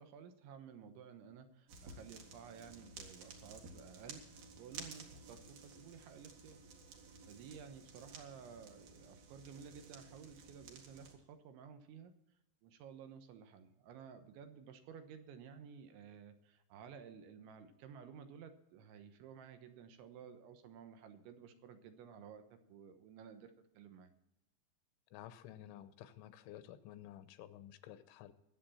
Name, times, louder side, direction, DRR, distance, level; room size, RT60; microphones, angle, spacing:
voice 1, 0.0-6.6 7.3-12.1 12.6-24.1, right 7 dB, 90° right, 8 dB, 3.5 m, -54 dB
sound 1, 1.7-11.2, right 4 dB, 60° right, 3.3 m, -54 dB
voice 2, 25.1-28.3, left 12 dB, 85° left, 12 dB, 3.3 m, -53 dB
22.0 x 7.9 x 4.2 m, 0.87 s
omnidirectional pair, 5.2 m